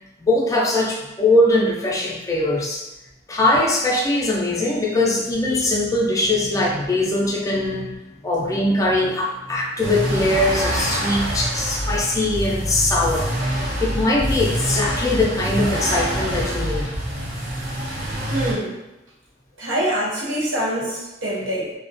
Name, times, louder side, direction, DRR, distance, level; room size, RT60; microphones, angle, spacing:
voice 1, 0.2-2.8 3.3-7.9 8.2-13.3 13.8-16.9, left 1 dB, 15° left, -2 dB, 0.4 m, -21 dB
sound 1, 9.8-18.5, equal, 45° right, 0.5 m, -25 dB
voice 2, 18.3-18.8 19.6-21.7, right 1 dB, 85° right, -4 dB, 0.7 m, -25 dB
2.3 x 2.1 x 2.5 m, 1.0 s
head